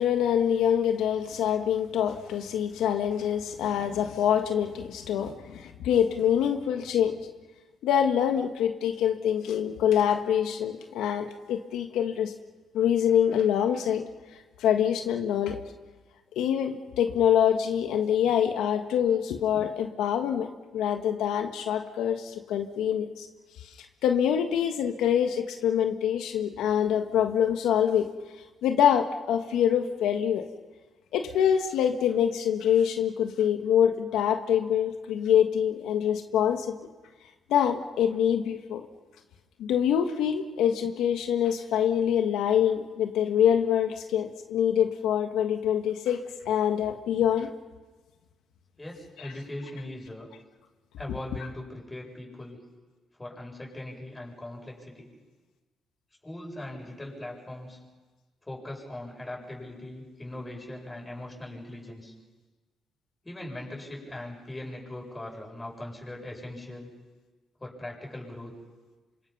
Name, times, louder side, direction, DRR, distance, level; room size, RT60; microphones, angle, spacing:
voice 1, 0.0-7.2 7.8-12.3 12.7-14.0 14.6-15.6 16.3-23.3 24.0-28.1 28.6-30.5 31.1-36.7 37.5-38.9 39.6-46.2 46.5-47.5, left 9 dB, 85° left, 5 dB, 1.5 m, -25 dB
voice 2, 48.8-50.3 51.0-52.6 53.2-55.1 56.2-57.8 58.4-62.1 63.2-66.9 67.6-68.5, left 1 dB, 15° left, -1 dB, 7.7 m, -40 dB
27.5 x 26.0 x 5.6 m, 1.3 s
cardioid pair, 90°, 0 cm